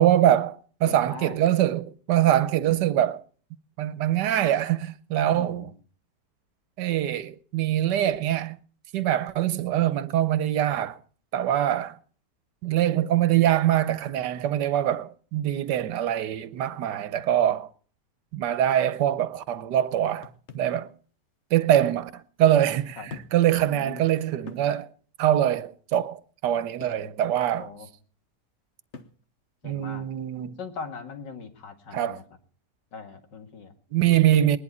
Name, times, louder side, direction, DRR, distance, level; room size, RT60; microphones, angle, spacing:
voice 1, 0.0-3.2 3.8-5.7 6.8-8.6 8.9-11.0 11.3-12.0 12.6-17.7 18.3-20.9 21.5-24.9 25.2-27.7 29.6-30.5 31.9-32.2 33.9-34.6, right 11 dB, 80° right, 1.4 m, -23 dB
voice 2, 0.9-1.4 5.4-5.7 23.0-23.1 23.7-24.0 27.5-27.9 29.6-30.1 30.6-32.2 32.9-33.7, left 5 dB, 85° left, 2.6 m, -40 dB
sound 1, 20.2-20.8 21.9-22.0 23.1-23.5 23.9-24.0 24.5-24.7 26.8-27.1 28.9-29.2, left 4 dB, 45° left, 1.2 m, -44 dB
20.5 x 11.0 x 4.3 m
omnidirectional pair, 1.8 m